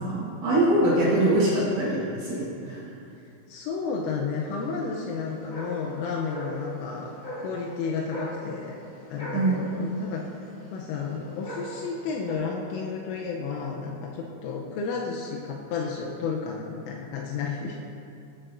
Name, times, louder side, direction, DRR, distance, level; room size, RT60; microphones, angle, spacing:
voice 1, 0.0-2.8 9.3-9.7, right 1 dB, 85° right, -7 dB, 1.7 m, -23 dB
voice 2, 3.5-7.1 7.4-8.8 9.1-10.2 10.7-18.0, left 5 dB, 85° left, -1 dB, 3.3 m, -32 dB
sound 1, 4.4-12.3, equal, 40° left, 2.9 m, -40 dB
16.0 x 9.2 x 2.6 m, 2.6 s
omnidirectional pair, 5.6 m